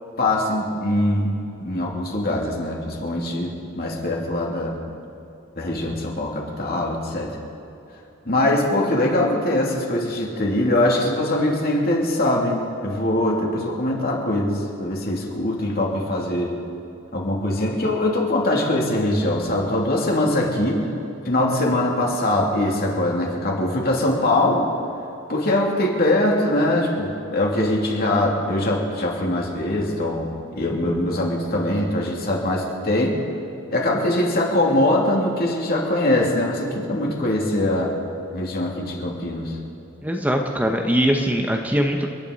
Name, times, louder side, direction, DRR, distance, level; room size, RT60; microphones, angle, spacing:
voice 1, 0.2-4.8 5.6-7.3 8.2-16.6 17.1-20.9 21.2-24.7 25.3-30.3 30.5-33.2 33.7-37.9 38.3-39.6, left 1 dB, 50° left, -2 dB, 2.9 m, -22 dB
voice 2, 40.0-42.1, equal, 10° right, 3 dB, 0.9 m, -21 dB
30.0 x 10.5 x 4.1 m, 3.0 s
head